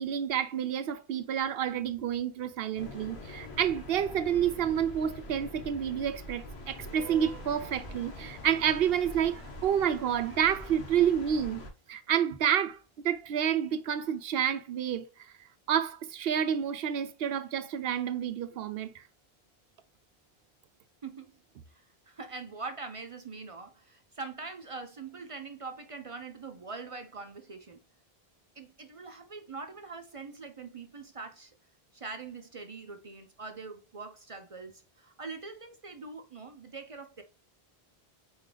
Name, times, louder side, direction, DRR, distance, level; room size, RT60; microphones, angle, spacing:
voice 1, 0.0-11.6 11.9-12.8 13.0-15.1 15.7-19.0, right 9 dB, 75° right, 0.8 m, -29 dB
sound 1, 2.8-11.7, left 1 dB, 85° left, 1.4 m, -44 dB
voice 2, 21.7-27.8 28.6-31.5 31.9-37.2, right 4 dB, 40° right, 0.5 m, -43 dB
4.4 x 3.7 x 3.2 m
omnidirectional pair, 1.0 m